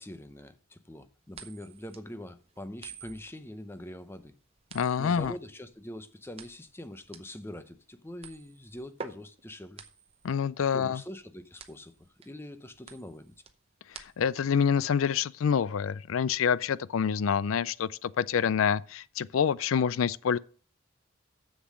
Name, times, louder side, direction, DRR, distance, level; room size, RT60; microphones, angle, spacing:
voice 1, 0.0-4.3 5.0-9.8 10.7-11.9 12.2-13.3, left 1 dB, 10° left, 0.7 m, -43 dB
sound 1, 1.3-14.5, right 5 dB, 30° right, 0.7 m, -49 dB
voice 2, 4.7-5.3 10.2-11.0 13.9-20.4, left 7 dB, 75° left, 0.4 m, -27 dB
7.5 x 6.9 x 6.2 m
head